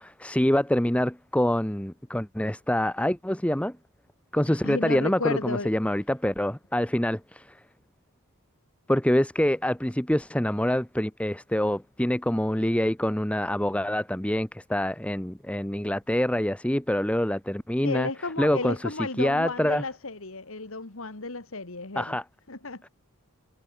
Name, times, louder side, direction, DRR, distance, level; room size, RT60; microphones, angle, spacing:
voice 1, 0.0-3.8 4.3-7.5 8.9-18.1 18.4-18.8 19.2-19.8 22.0-22.2, left 1 dB, 5° left, 0.9 m, -26 dB
voice 2, 4.5-5.7 17.8-22.2 22.5-22.9, left 3 dB, 65° left, 2.0 m, -33 dB
head